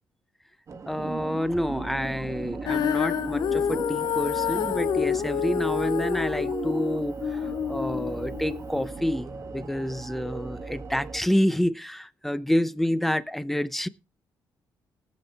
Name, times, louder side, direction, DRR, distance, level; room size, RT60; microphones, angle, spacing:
sound 1, 0.7-11.2, right 4 dB, 40° right, 1.3 m, -37 dB
voice 1, 0.9-7.4 7.7-13.9, equal, 5° left, 0.7 m, -28 dB
Female singing, 2.7-8.9, left 9 dB, 65° left, 0.5 m, -28 dB
20.0 x 7.3 x 3.5 m
cardioid pair, 110°, 8 cm